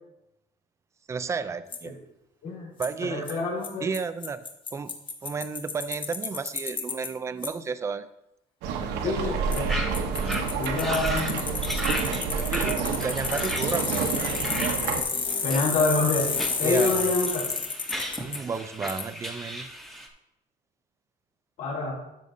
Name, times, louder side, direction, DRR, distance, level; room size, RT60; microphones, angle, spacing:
voice 1, 1.1-1.9 2.8-3.4 3.8-4.4 4.7-4.9 5.2-8.1 8.8-9.3 10.1-10.4 12.4-14.3 16.6-17.1 18.2-19.7, right 5 dB, 15° right, 12 dB, 0.3 m, -32 dB
Bicycle, 1.7-1.8 2.8-2.9 3.3-3.4 3.6-3.7 3.9-4.0 4.2-7.1 7.4-7.5 9.5-9.6 9.9-18.4 18.9-19.0, left 4 dB, 30° left, 1.0 m, -30 dB
voice 2, 2.4-2.7 3.1-3.8 9.0-9.7 10.6-11.4 15.4-16.3 16.6-17.5 21.6-22.0, left 3 dB, 65° left, -3 dB, 3.4 m, -26 dB
sound 1, 8.6-15.0, right 5 dB, 85° right, 0.9 m, -29 dB
sound 2, 9.7-9.9 10.2-10.4 10.8-11.3 11.6-14.8 15.3-15.7 16.2-20.1, equal, ahead, 0.7 m, -35 dB
12.5 x 6.4 x 2.6 m, 0.89 s
cardioid pair, 165°, 17 cm